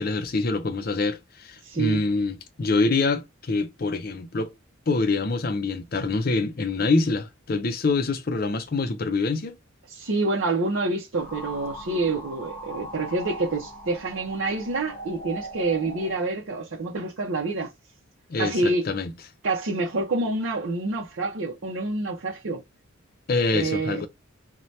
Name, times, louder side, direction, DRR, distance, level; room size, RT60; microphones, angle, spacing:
voice 1, 0.0-4.5 4.9-9.6 18.3-19.1 23.3-24.1, left 3 dB, 45° left, 0.5 m, -25 dB
voice 2, 1.6-2.0 9.9-17.7 18.4-18.9 19.4-22.6 23.5-24.0, right 3 dB, 70° right, 0.6 m, -27 dB
sound 1, 11.1-16.2, equal, 10° left, 1.1 m, -39 dB
2.7 x 2.2 x 3.1 m
head